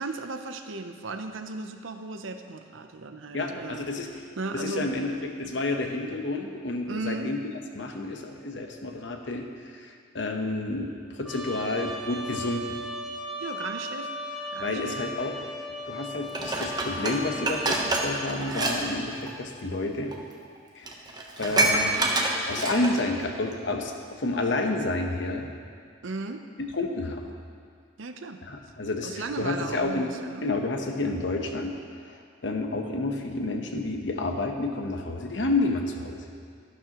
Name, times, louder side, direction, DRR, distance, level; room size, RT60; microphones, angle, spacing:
voice 1, 0.0-3.9 4.4-4.9 6.9-7.3 13.4-14.2 14.5-15.0 26.0-26.5 28.0-28.4 29.0-30.5, right 3 dB, 80° right, 7 dB, 0.7 m, -36 dB
voice 2, 3.3-4.1 4.5-7.4 7.8-12.8 14.6-15.4 15.9-20.1 20.7-21.0 21.4-22.1 22.5-25.5 26.6-27.3 28.4-30.1 30.4-31.8 32.0-36.2, left 2 dB, 65° left, 3 dB, 1.0 m, -30 dB
Trumpet, 11.2-18.1, left 1 dB, ahead, 1.1 m, -37 dB
Dishes pots and pans, 16.3-18.8 19.1-19.3 20.1-20.2 20.6-20.7 20.9-23.1 23.5-23.6, right 2 dB, 20° right, 0.9 m, -27 dB
12.5 x 11.5 x 3.0 m, 2.1 s
head